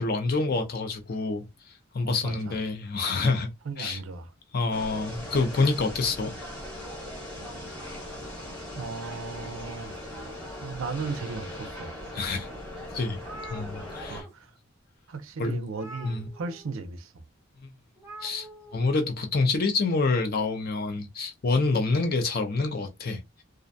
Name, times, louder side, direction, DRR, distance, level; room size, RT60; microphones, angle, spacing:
voice 1, 0.0-1.5 1.9-3.5 3.8-4.0 4.5-6.3 12.1-12.5 12.9-13.2 13.5-14.2 15.4-15.6 16.0-16.3 18.2-18.5 18.7-23.4, left 3 dB, 45° left, 0.5 m, -27 dB
voice 2, 2.0-2.6 3.6-4.3 8.7-10.2 10.6-11.9 14.1-14.5 15.1-17.3, right 4 dB, 70° right, 0.4 m, -36 dB
sound 1, 4.7-14.2, left 1 dB, 5° left, 1.0 m, -39 dB
sound 2, 9.0-10.2 10.7-11.6 12.2-12.3 12.7-12.8 12.9-14.3 14.6-14.8 15.7-16.7 17.9-18.8, right 1 dB, 15° right, 0.6 m, -47 dB
2.5 x 2.1 x 2.6 m
head